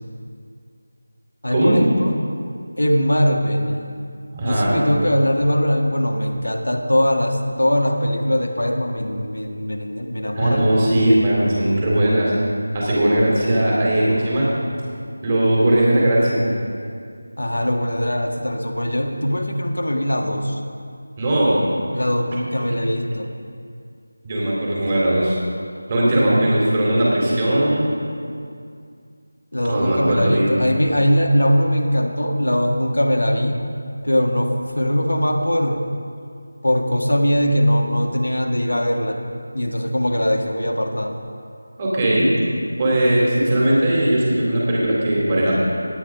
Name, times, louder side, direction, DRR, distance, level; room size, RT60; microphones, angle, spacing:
voice 1, 1.4-2.1 2.8-3.8 4.4-10.7 17.4-20.6 21.9-23.3 26.1-26.5 29.5-33.6 34.0-35.8 36.6-39.2 39.5-41.1, equal, 85° left, 2 dB, 1.5 m, -21 dB
voice 2, 4.3-4.8 10.4-12.3 12.7-14.5 15.2-16.4 21.2-21.6 24.2-25.4 25.9-27.9 29.7-30.5 41.8-42.3 42.8-45.6, right 1 dB, 30° right, -6 dB, 3.6 m, -18 dB
17.5 x 9.9 x 3.9 m, 2.3 s
figure-of-eight pair, 170°, 0 cm